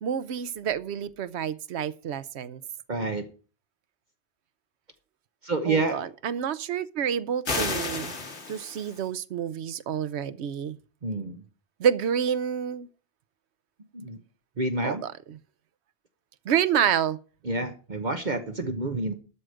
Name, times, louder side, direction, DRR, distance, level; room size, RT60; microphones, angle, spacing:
voice 1, 0.0-2.6 5.6-8.2 8.5-10.8 11.8-12.9 14.8-15.4 16.4-17.2, right 8 dB, 80° right, 1.0 m, -28 dB
voice 2, 2.9-3.2 5.4-6.1 11.0-11.4 13.9-14.2 14.6-15.0 17.4-19.1, right 2 dB, 45° right, 1.1 m, -28 dB
sound 1, 7.4-9.0, left 3 dB, 80° left, 2.1 m, -31 dB
12.5 x 4.9 x 7.8 m
omnidirectional pair, 1.1 m